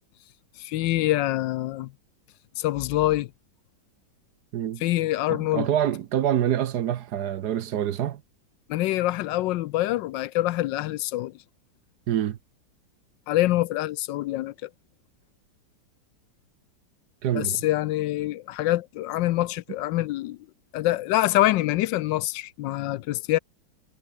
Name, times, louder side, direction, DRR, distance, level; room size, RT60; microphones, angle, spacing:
voice 1, 0.6-1.9 2.6-3.3 4.8-5.7 8.7-11.4 13.3-14.7 17.3-20.4 20.7-23.4, left 15 dB, 80° left, 1.2 m, -25 dB
voice 2, 5.3-8.2 12.1-12.4 17.2-17.6, right 10 dB, 65° right, 1.3 m, -26 dB
omnidirectional pair, 2.1 m